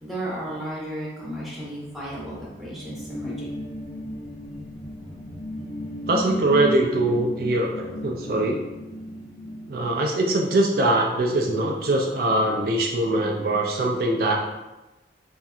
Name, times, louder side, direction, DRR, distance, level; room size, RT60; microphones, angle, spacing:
voice 1, 0.0-3.3, right 1 dB, ahead, -7 dB, 1.1 m, -34 dB
sound 1, 1.9-10.9, left 1 dB, 40° left, 0.6 m, -35 dB
voice 2, 6.1-8.6 9.7-14.4, right 2 dB, 55° right, 1 dB, 0.4 m, -22 dB
4.2 x 3.5 x 2.4 m, 1.1 s
head